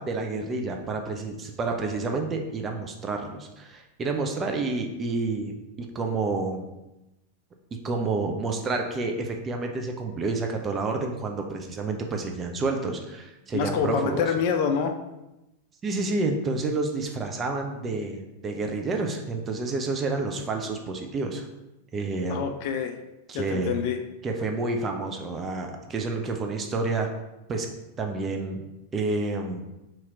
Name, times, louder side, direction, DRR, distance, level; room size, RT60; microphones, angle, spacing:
voice 1, 0.0-6.7 7.8-14.3 15.8-21.5 21.9-22.5 23.3-23.8 24.2-27.1 27.5-27.7 28.0-28.6 28.9-29.7, right 3 dB, 25° right, 3 dB, 0.4 m, -29 dB
voice 2, 13.5-14.9 22.3-22.9 23.3-24.0, left 7 dB, 45° left, 6 dB, 0.3 m, -26 dB
2.9 x 2.8 x 3.5 m, 0.95 s
figure-of-eight pair, 90°, 0 cm